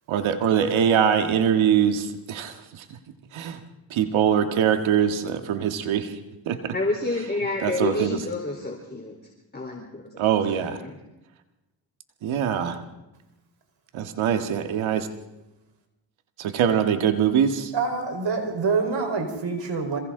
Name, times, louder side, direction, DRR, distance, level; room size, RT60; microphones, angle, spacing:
voice 1, 0.1-2.8 3.3-3.6 3.9-6.2 6.5-6.7 7.6-8.2 10.2-10.8 12.2-12.8 13.9-15.1 16.4-17.7, right 8 dB, 85° right, 6 dB, 1.9 m, -23 dB
voice 2, 6.7-9.2 9.5-10.1 10.7-11.0, left 2 dB, 20° left, 0 dB, 4.1 m, -29 dB
voice 3, 17.7-20.0, right 4 dB, 65° right, 5 dB, 4.6 m, -26 dB
27.5 x 27.0 x 3.9 m, 0.97 s
cardioid pair, 60°, 46 cm